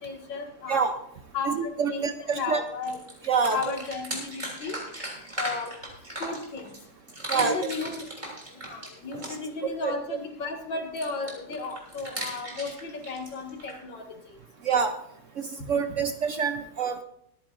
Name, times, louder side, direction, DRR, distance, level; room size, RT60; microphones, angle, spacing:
voice 1, 0.0-0.9 1.3-3.0 3.5-4.8 5.4-5.7 6.2-6.7 7.3-8.0 8.5-14.0 15.9-16.0, left 4 dB, 85° left, 2 dB, 2.6 m, -34 dB
voice 2, 1.5-2.6 3.2-3.7 7.3-7.7 9.8-9.9 14.6-15.0 15.4-17.0, right 6 dB, 60° right, 7 dB, 0.8 m, -26 dB
sound 1, 2.3-2.4 2.7-6.8 7.1-9.6 11.0-13.8, right 1 dB, 25° right, 3.4 m, -37 dB
24.5 x 9.4 x 2.5 m, 0.71 s
omnidirectional pair, 2.0 m